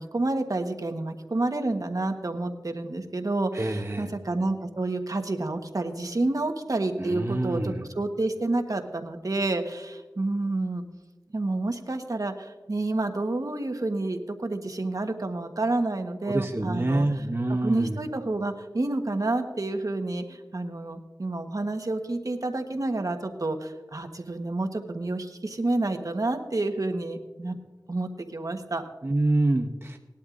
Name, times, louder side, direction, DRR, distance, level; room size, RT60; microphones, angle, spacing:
voice 1, 0.0-10.8 11.3-27.6 27.9-28.9, right 2 dB, 60° right, 6 dB, 1.2 m, -29 dB
voice 2, 3.5-4.1 7.0-7.9 16.3-18.0 29.0-30.0, right 2 dB, 35° right, 4 dB, 0.8 m, -26 dB
19.5 x 11.5 x 2.5 m, 1.2 s
wide cardioid pair, 50°, 7 cm